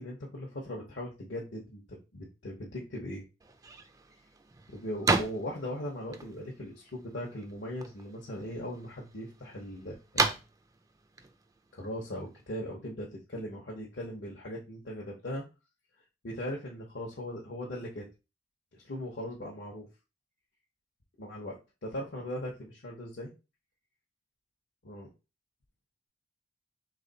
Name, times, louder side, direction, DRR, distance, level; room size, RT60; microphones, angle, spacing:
voice 1, 0.0-3.2 4.7-10.3 11.7-15.4 16.2-18.1 18.7-19.9 21.2-23.3 24.8-25.1, left 1 dB, 70° left, -3 dB, 0.9 m, -39 dB
sound 1, 3.4-12.6, right 3 dB, 20° right, 0.3 m, -36 dB
3.3 x 3.2 x 4.0 m, 0.29 s
head